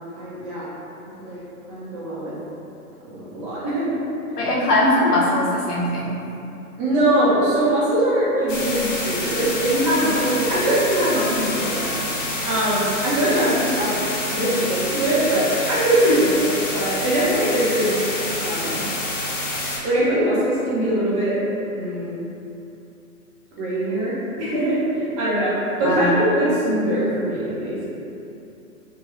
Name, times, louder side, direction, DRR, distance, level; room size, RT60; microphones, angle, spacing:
voice 1, 0.2-0.7 1.2-1.4 1.7-2.3 3.0-4.0 6.8-12.1 12.4-14.0 14.3-18.9 19.8-21.4 21.7-22.2 23.6-27.8, right 1 dB, 25° right, -8 dB, 0.5 m, -22 dB
voice 2, 4.4-6.2 25.8-26.1, left 1 dB, 90° left, -5 dB, 0.7 m, -20 dB
sound 1, 8.5-19.8, left 2 dB, 55° left, 0.7 m, -27 dB
3.1 x 2.3 x 2.3 m, 2.8 s
figure-of-eight pair, 125°, 45 cm